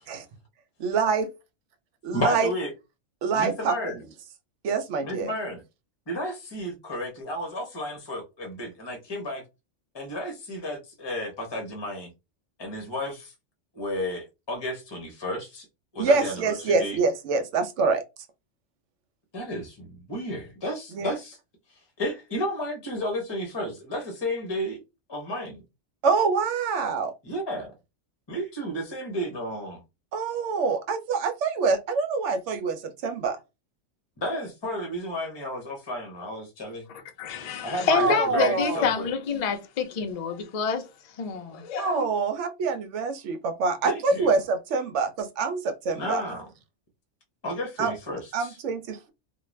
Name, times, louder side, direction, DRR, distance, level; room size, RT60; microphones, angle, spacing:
voice 1, 0.8-1.3 2.0-2.5 3.2-3.8 4.6-5.3 16.0-18.0 20.9-21.2 26.0-27.1 30.1-33.4 37.9-39.0 41.8-46.2 47.8-47.9 48.3-49.1, right 4 dB, 75° right, 0.9 m, -25 dB
voice 2, 2.1-2.7 3.3-4.0 5.0-5.6 6.1-9.4 9.9-12.1 12.6-13.3 13.7-15.7 15.9-17.0 19.3-21.4 22.0-24.8 25.1-25.6 27.2-27.7 28.3-29.8 34.2-36.8 37.6-39.1 43.8-44.3 45.9-46.5 47.4-48.6, equal, 25° left, 0.6 m, -32 dB
voice 3, 37.2-40.9 41.2-42.1, left 6 dB, 70° left, 0.3 m, -27 dB
2.4 x 2.2 x 3.1 m
omnidirectional pair, 1.3 m